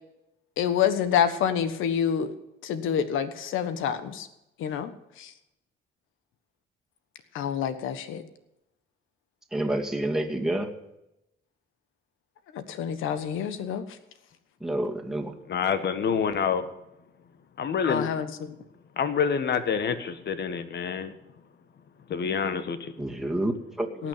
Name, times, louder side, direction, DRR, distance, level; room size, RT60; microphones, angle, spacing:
voice 1, 0.6-2.3 2.6-4.3 4.6-5.3 7.3-8.2 12.5-13.8 17.9-18.6 24.0-24.1, left 8 dB, 85° left, 11 dB, 1.4 m, -27 dB
voice 2, 9.5-10.7 14.6-15.3 23.0-24.1, right 1 dB, ahead, 1 dB, 2.3 m, -29 dB
voice 3, 15.5-16.6 17.6-18.1 19.0-21.2 22.1-22.9, left 6 dB, 60° left, 10 dB, 1.5 m, -27 dB
18.0 x 6.2 x 9.0 m, 0.89 s
cardioid pair, 90°, 20 cm